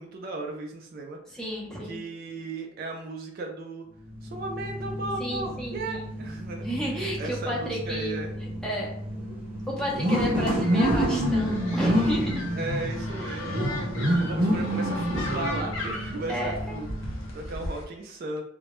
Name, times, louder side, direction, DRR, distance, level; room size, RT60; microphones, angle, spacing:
voice 1, 0.0-1.2 1.8-3.9 4.2-8.3 12.6-13.9 14.2-18.4, right 2 dB, 45° right, 2 dB, 0.3 m, -36 dB
voice 2, 1.3-2.0 5.2-6.1 6.6-8.2 8.6-8.9 9.7-12.4 16.3-16.8, equal, 5° left, -5 dB, 0.5 m, -32 dB
sound 1, 4.1-17.4, equal, 30° right, 0.8 m, -29 dB
sound 2, 10.5-17.8, left 1 dB, 70° left, 0.6 m, -36 dB
2.2 x 2.0 x 2.9 m, 0.70 s
head